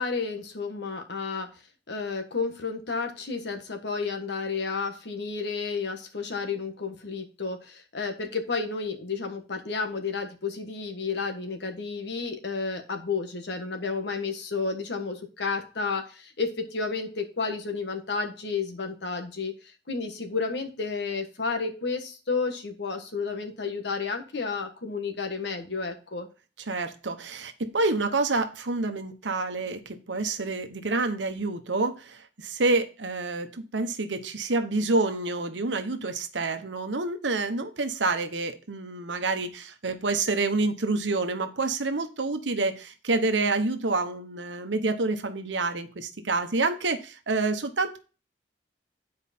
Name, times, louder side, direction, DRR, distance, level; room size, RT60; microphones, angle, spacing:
voice 1, 0.0-1.5 1.9-26.3, left 4 dB, 65° left, 5 dB, 1.4 m, -31 dB
voice 2, 26.7-48.0, right 3 dB, 80° right, 8 dB, 1.0 m, -28 dB
9.6 x 4.8 x 4.3 m, 0.34 s
head